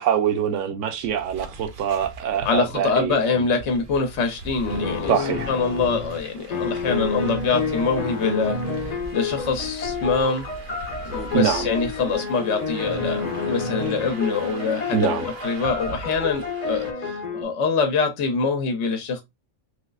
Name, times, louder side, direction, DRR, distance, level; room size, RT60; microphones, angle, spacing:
voice 1, 0.0-3.4 5.1-5.5 11.3-11.7 14.9-15.3, right 9 dB, 75° right, 1.0 m, -24 dB
sound 1, 1.0-16.9, right 3 dB, 60° right, 0.6 m, -41 dB
voice 2, 2.4-10.5 11.1-19.2, left 4 dB, 70° left, 0.9 m, -25 dB
sound 2, 4.6-17.4, left 4 dB, 40° left, 0.7 m, -29 dB
3.3 x 3.0 x 2.3 m
omnidirectional pair, 1.3 m